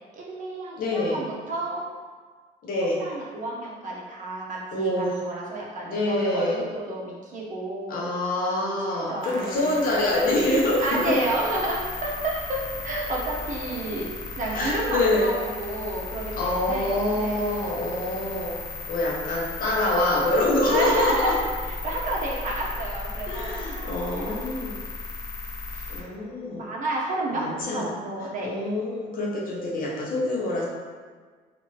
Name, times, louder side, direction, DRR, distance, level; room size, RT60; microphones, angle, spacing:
voice 1, 0.1-1.8 3.0-8.1 8.9-9.7 10.6-14.1 14.4-17.4 20.7-24.6 25.7-25.9 26.5-28.5, right 2 dB, 50° right, -3 dB, 0.8 m, -31 dB
voice 2, 0.8-1.2 2.6-3.0 4.7-5.1 5.9-6.6 7.9-11.2 14.5-15.3 16.4-18.5 18.9-21.3 23.3-24.8 25.9-26.7 27.3-27.9 28.4-30.6, left 1 dB, 55° left, -4 dB, 0.9 m, -25 dB
sound 1, 9.2-26.0, left 3 dB, 25° left, 0.6 m, -36 dB
2.9 x 2.5 x 3.1 m, 1.5 s
cardioid pair, 110°, 17 cm